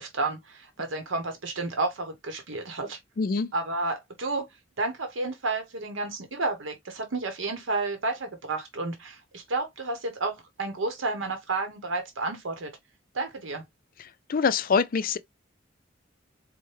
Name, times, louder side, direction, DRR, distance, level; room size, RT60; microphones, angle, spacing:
voice 1, 0.0-3.0 3.5-4.5 4.8-12.7 13.1-13.6, right 3 dB, 85° right, 0.9 m, -31 dB
voice 2, 3.2-3.5 14.3-15.2, left 5 dB, 50° left, 0.4 m, -24 dB
4.4 x 2.1 x 3.1 m
head